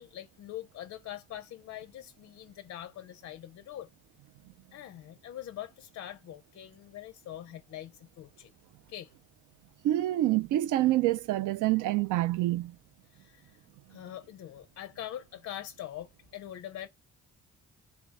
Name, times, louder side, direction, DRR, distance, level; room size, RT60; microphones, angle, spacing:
voice 1, 0.0-3.9 4.7-8.5 8.9-9.1 13.1-13.6 13.9-16.9, left 12 dB, 55° left, 0.4 m, -43 dB
voice 2, 9.8-12.8, right 15 dB, 85° right, 0.5 m, -27 dB
3.2 x 3.1 x 3.5 m
cardioid pair, 90°, 30 cm